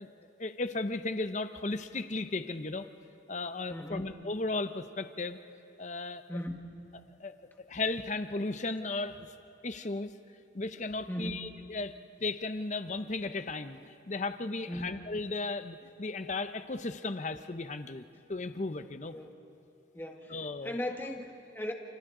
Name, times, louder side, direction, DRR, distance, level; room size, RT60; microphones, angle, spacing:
voice 1, 0.0-2.9 3.3-5.4 5.8-6.4 7.2-9.3 9.6-10.1 10.5-11.9 12.2-18.0 18.3-19.2 20.3-20.7, left 3 dB, 40° left, 10 dB, 0.7 m, -35 dB
voice 2, 3.7-4.0 6.3-6.7 11.1-11.5 14.7-14.9 19.1-19.4 19.9-20.4 20.6-21.7, equal, 10° left, 3 dB, 1.4 m, -37 dB
29.5 x 28.5 x 3.8 m, 2.7 s
head